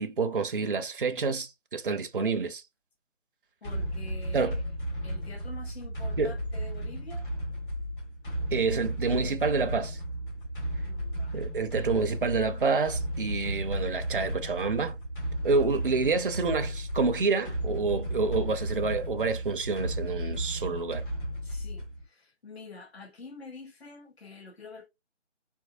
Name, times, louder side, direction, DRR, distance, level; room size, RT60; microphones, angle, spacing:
voice 1, 0.0-2.6 4.3-4.6 6.2-6.4 8.5-10.0 11.3-15.0 15.4-21.0, right 4 dB, 45° right, 0.6 m, -28 dB
voice 2, 3.6-4.6 5.0-7.3 10.8-11.5 15.4-15.5 21.4-24.9, left 3 dB, 60° left, 1.1 m, -47 dB
sound 1, 3.6-22.0, equal, 45° left, 2.4 m, -34 dB
4.4 x 2.9 x 2.4 m
figure-of-eight pair, 155°, 36 cm